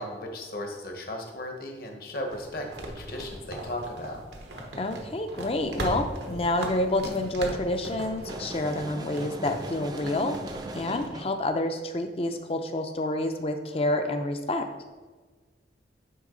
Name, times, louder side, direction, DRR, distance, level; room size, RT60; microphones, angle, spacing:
voice 1, 0.0-4.2, left 1 dB, 55° left, 2 dB, 1.1 m, -36 dB
sound 1, 2.3-11.1, right 1 dB, 80° right, 1.0 m, -39 dB
voice 2, 4.8-10.3 10.7-14.7, left 1 dB, 35° left, 6 dB, 0.5 m, -28 dB
sound 2, 8.3-11.4, right 2 dB, 20° right, 0.3 m, -40 dB
9.5 x 3.7 x 3.8 m, 1.4 s
head